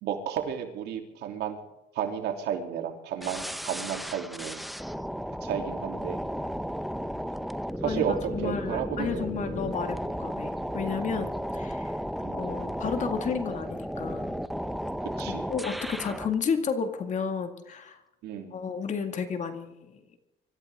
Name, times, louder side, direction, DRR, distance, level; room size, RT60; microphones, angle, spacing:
voice 1, 0.0-1.6 1.9-4.7 5.4-6.2 7.8-8.1 8.4-9.3 12.2-12.6 15.2-15.4 18.2-18.6, right 9 dB, 80° right, 3 dB, 3.0 m, -32 dB
sound 1, 3.2-16.3, equal, ahead, 0.8 m, -34 dB
voice 2, 7.8-11.9 12.3-14.4 15.3-18.0 18.5-20.0, left 6 dB, 45° left, 7 dB, 2.1 m, -32 dB
25.0 x 14.5 x 3.7 m, 0.94 s
cardioid pair, 110°, 17 cm